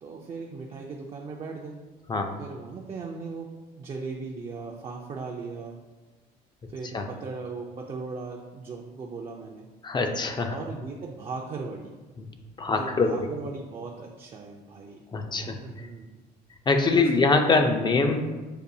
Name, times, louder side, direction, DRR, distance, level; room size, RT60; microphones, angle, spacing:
voice 1, 0.0-1.8 2.4-3.5 3.8-5.8 6.7-9.7 10.5-11.9 12.7-15.0 15.4-16.1 16.9-17.5, right 4 dB, 35° right, 0 dB, 0.4 m, -38 dB
voice 2, 9.8-10.5 12.2-12.3 12.6-13.2 15.1-15.6 16.7-18.2, left 3 dB, 25° left, 5 dB, 0.4 m, -23 dB
6.6 x 2.3 x 2.6 m, 1.2 s
cardioid pair, 110°, 17 cm